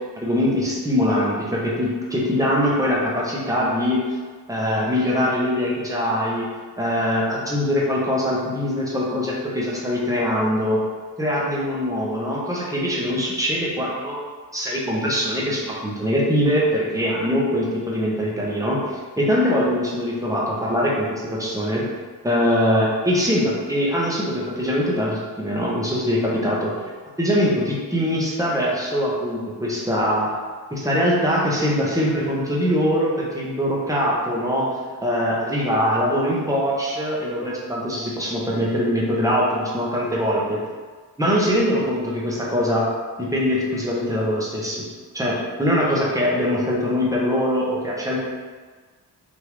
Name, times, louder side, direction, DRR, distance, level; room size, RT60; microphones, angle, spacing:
voice 1, 0.2-4.1 4.5-6.5 6.8-10.8 11.2-14.2 14.5-21.8 22.2-26.7 27.2-30.3 30.7-34.7 35.0-40.6 41.2-42.9 43.2-44.8 45.1-48.2, equal, 10° right, -6 dB, 0.7 m, -22 dB
3.5 x 2.6 x 3.0 m, 1.4 s
wide cardioid pair, 135°, 38 cm